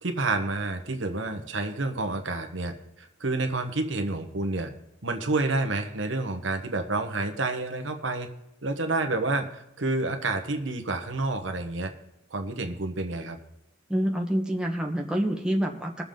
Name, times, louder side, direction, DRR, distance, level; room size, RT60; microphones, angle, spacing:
voice 1, 0.0-4.7 5.0-8.3 8.6-11.9 12.3-13.4, right 2 dB, 80° right, 5 dB, 1.3 m, -29 dB
voice 2, 13.9-16.0, equal, 5° right, 0 dB, 1.4 m, -27 dB
20.5 x 7.0 x 3.8 m, 0.90 s
head